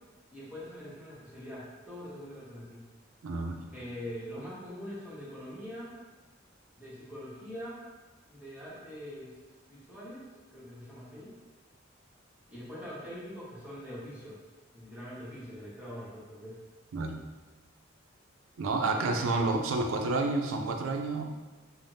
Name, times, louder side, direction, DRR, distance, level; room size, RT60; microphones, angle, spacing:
voice 1, 0.3-2.8 3.7-5.9 6.8-7.8 8.3-9.3 9.7-10.2 10.5-11.3 12.5-14.4 14.7-16.6 18.9-19.6, equal, 5° right, -10 dB, 0.9 m, -43 dB
voice 2, 3.2-3.6 16.9-17.1 18.6-21.2, right 3 dB, 90° right, 3 dB, 0.4 m, -29 dB
3.2 x 2.0 x 2.6 m, 1.2 s
head